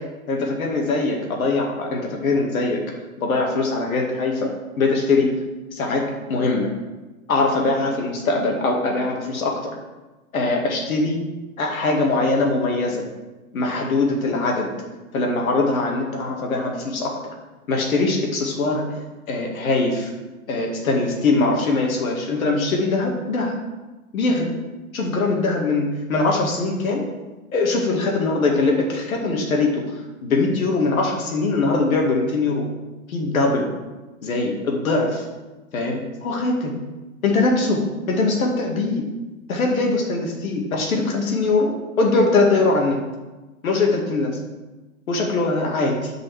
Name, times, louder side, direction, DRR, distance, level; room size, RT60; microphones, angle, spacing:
voice 1, 0.3-2.8 3.2-5.3 5.7-6.7 7.3-9.7 10.3-11.2 11.6-13.0 13.5-14.7 15.1-17.1 17.7-18.9 19.3-20.1 20.5-23.5 24.1-24.5 24.9-27.0 27.5-29.8 30.2-32.6 33.1-33.7 34.2-35.2 35.7-36.8 37.2-39.1 39.5-41.7 42.0-43.0 43.6-44.4 45.1-46.1, left 3 dB, 70° left, 0 dB, 2.4 m, -22 dB
8.0 x 5.5 x 7.4 m, 1.2 s
hypercardioid pair, 120°, 43 cm